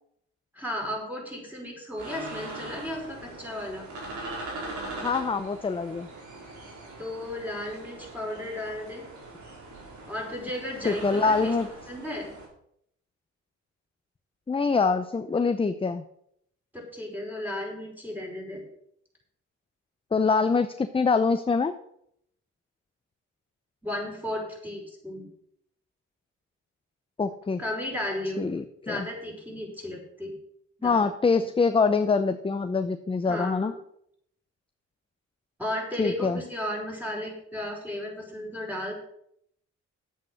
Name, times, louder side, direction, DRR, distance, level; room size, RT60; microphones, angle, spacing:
voice 1, 0.5-3.8 7.0-9.1 10.1-11.5 11.9-12.3 16.7-18.6 23.8-25.3 27.6-28.4 28.9-30.3 30.8-31.1 31.4-31.5 33.3-33.7 35.6-38.9, left 1 dB, 5° right, -1 dB, 5.0 m, -34 dB
sound 1, 2.0-12.5, right 2 dB, 75° right, 4.5 m, -41 dB
voice 2, 5.0-6.1 10.8-11.7 14.5-16.0 20.1-21.7 27.2-27.6 28.4-29.1 30.8-33.7 36.0-36.4, left 4 dB, 20° left, 9 dB, 0.6 m, -24 dB
10.5 x 8.2 x 6.3 m, 0.72 s
cardioid pair, 90°, 30 cm